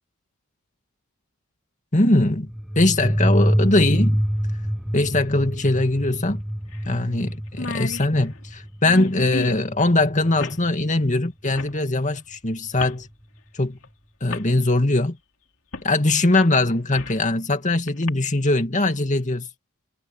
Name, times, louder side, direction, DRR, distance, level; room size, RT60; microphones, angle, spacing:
voice 1, 1.9-2.5 2.8-4.2 4.9-6.4 6.9-13.1 13.6-13.8 14.2-15.2 15.8-19.5, left 2 dB, 35° left, 2.3 m, -21 dB
sound 1, 2.5-10.9, equal, ahead, 0.7 m, -26 dB
sound 2, 5.6-5.7 6.1-6.2 6.7-6.9 7.2-7.3 7.5-9.7 10.4-10.6 11.5-11.8 12.8-13.0 13.8-13.9 14.3-14.5 15.7-15.9 16.3-17.3 17.9-18.1, left 3 dB, 65° left, 2.9 m, -34 dB
head